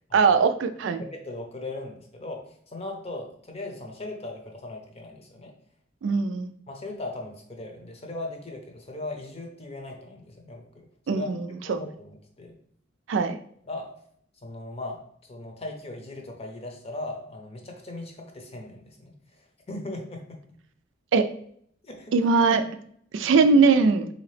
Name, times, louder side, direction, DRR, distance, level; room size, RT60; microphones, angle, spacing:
voice 1, 0.1-1.0 6.0-6.5 11.1-11.4 11.7-11.8 13.1-13.4 21.1-21.3 22.1-22.7 23.1-24.1, right 4 dB, 75° right, 10 dB, 0.3 m, -20 dB
voice 2, 1.1-5.5 6.7-11.3 11.6-12.5 13.7-13.9 14.4-20.4 21.8-22.1, left 2 dB, 35° left, 2 dB, 0.7 m, -38 dB
3.8 x 2.8 x 3.2 m, 0.64 s
head